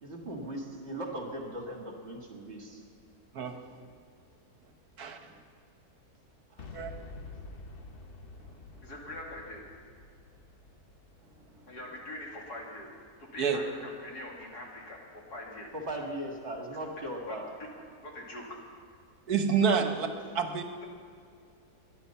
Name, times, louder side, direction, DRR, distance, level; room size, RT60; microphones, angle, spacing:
voice 1, 0.0-2.8 6.5-6.7 15.8-17.5, right 1 dB, 45° right, 1 dB, 2.4 m, -38 dB
voice 2, 5.0-5.3 6.7-6.9 13.4-13.6 19.3-20.1 20.3-20.7, right 6 dB, 75° right, 6 dB, 1.6 m, -28 dB
Boom, 6.6-12.5, left 3 dB, 40° left, 1.1 m, -48 dB
voice 3, 8.8-9.6 11.7-12.9 13.2-15.7 17.3-17.4 18.0-18.6, left 1 dB, 80° left, -2 dB, 3.2 m, -43 dB
21.5 x 10.5 x 5.7 m, 2.3 s
omnidirectional pair, 1.7 m